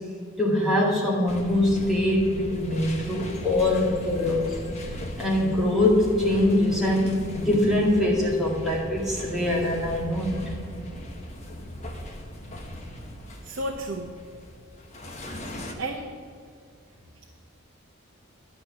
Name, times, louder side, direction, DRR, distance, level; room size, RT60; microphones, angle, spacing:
voice 1, 0.4-4.6 5.2-10.4, left 1 dB, ahead, -5 dB, 2.1 m, -23 dB
sound 1, 1.3-15.7, left 1 dB, 30° left, 1.2 m, -38 dB
voice 2, 13.4-14.1 15.8-16.1, right 1 dB, 60° right, 1 dB, 0.9 m, -32 dB
11.0 x 6.1 x 8.6 m, 2.3 s
head